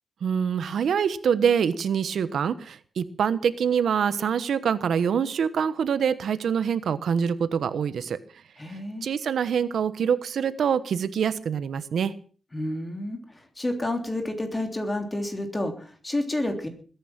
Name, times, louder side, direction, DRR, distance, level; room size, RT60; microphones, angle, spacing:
voice 1, 0.2-8.2 9.0-12.1, right 7 dB, 80° right, 13 dB, 1.1 m, -25 dB
voice 2, 8.6-9.1 12.5-16.7, left 1 dB, 20° left, 5 dB, 3.3 m, -30 dB
21.0 x 10.5 x 5.9 m, 0.42 s
wide cardioid pair, 140°, 0 cm